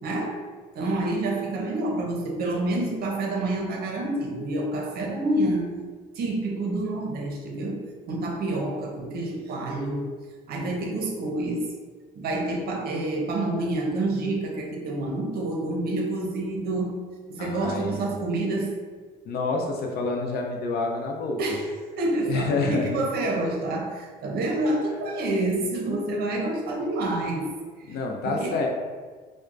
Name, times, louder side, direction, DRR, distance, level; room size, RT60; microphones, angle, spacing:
voice 1, 0.0-0.4 0.7-5.7 6.2-7.8 8.1-10.1 10.5-11.7 12.1-17.0 17.3-18.7 21.4-21.7 22.0-27.5 27.8-28.0 28.2-28.6, right 2 dB, 65° right, -1 dB, 0.7 m, -28 dB
voice 2, 17.4-18.0 19.3-21.4 22.3-22.9 27.9-28.7, left 3 dB, 70° left, 1 dB, 0.6 m, -28 dB
4.4 x 2.1 x 2.5 m, 1.5 s
cardioid pair, 110°, 17 cm